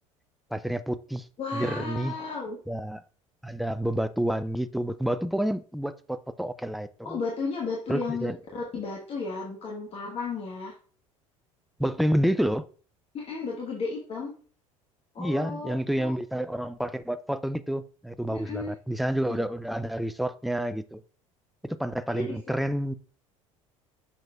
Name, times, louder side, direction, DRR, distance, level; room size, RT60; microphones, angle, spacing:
voice 1, 0.5-1.3 1.5-2.1 2.7-3.0 3.4-7.2 7.9-8.4 11.8-12.7 15.2-21.0 21.6-22.9, equal, ahead, 0.3 m, -29 dB
voice 2, 1.4-2.6 7.0-10.7 13.1-14.3 15.1-15.7 16.0-16.1 18.3-18.7 19.3-19.4 22.1-22.4, left 4 dB, 35° left, 1.4 m, -34 dB
6.3 x 6.3 x 2.4 m
figure-of-eight pair, 65°, 17 cm